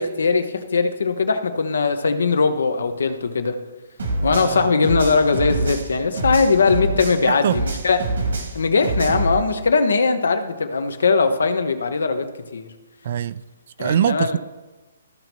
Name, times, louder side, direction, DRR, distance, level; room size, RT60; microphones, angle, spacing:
voice 1, 0.0-3.6 4.2-8.0 8.5-12.3 12.5-12.7 13.8-14.4, left 4 dB, 80° left, 8 dB, 1.0 m, -20 dB
sound 1, 4.0-7.2 7.5-9.3, right 2 dB, 75° right, 2.3 m, -25 dB
voice 2, 4.3-4.7 7.2-7.6 13.0-13.4 13.8-14.4, right 9 dB, 50° right, 18 dB, 0.3 m, -23 dB
14.5 x 5.4 x 3.0 m, 1.2 s
hypercardioid pair, 160°, 0 cm